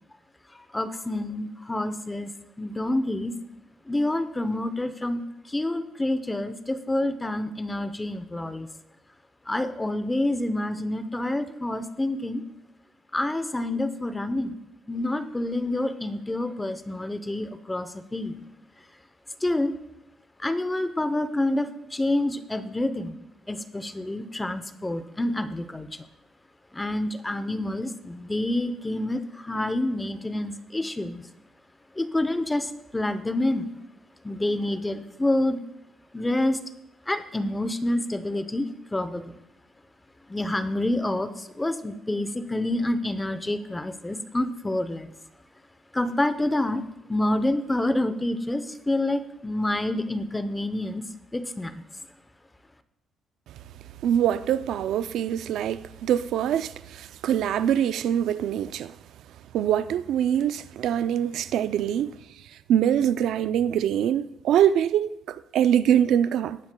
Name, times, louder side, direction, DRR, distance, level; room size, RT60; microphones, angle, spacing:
voice 1, 0.7-2.3 2.6-3.3 3.9-5.2 5.5-8.7 9.5-12.4 13.1-14.6 14.9-18.4 19.4-19.7 20.4-23.2 23.5-25.9 26.7-31.2 32.0-33.8 34.2-35.6 36.1-36.6 37.1-39.4 40.3-45.1 45.9-46.8 47.1-51.1 51.3-51.7, left 1 dB, 10° left, 0.7 m, -28 dB
voice 2, 54.0-59.0 59.5-62.2 62.7-66.6, right 10 dB, 80° right, 0.4 m, -24 dB
19.0 x 9.6 x 2.2 m
cardioid pair, 125°, 0 cm